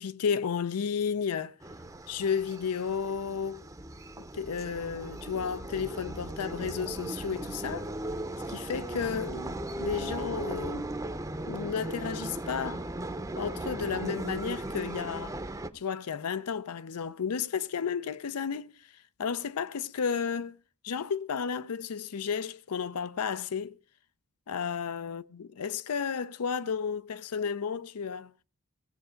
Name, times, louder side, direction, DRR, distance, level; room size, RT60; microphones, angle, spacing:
voice 1, 0.0-1.6 2.1-3.6 4.3-7.9 8.5-10.9 11.5-12.8 13.4-15.4 15.7-18.7 19.2-20.6 20.8-23.8 24.5-28.3, left 6 dB, 90° left, 0.5 m, -32 dB
sound 1, 1.6-15.7, right 1 dB, 15° right, 0.6 m, -37 dB
17.5 x 7.7 x 5.0 m
head